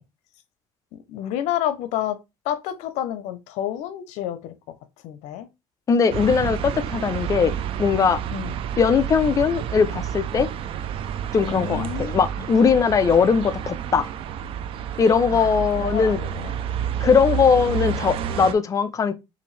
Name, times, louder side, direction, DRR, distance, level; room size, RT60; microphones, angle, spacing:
voice 1, 0.9-2.2 2.4-4.5 5.0-5.5 8.3-8.5 11.4-12.5 15.3-16.6, left 11 dB, 80° left, 0.7 m, -30 dB
voice 2, 5.9-8.2 8.8-10.5 11.3-14.0 15.0-16.2 17.0-19.1, left 6 dB, 30° left, 0.4 m, -20 dB
sound 1, 6.1-18.5, right 9 dB, 50° right, 0.4 m, -29 dB
5.5 x 2.6 x 3.2 m
cardioid pair, 135°, 12 cm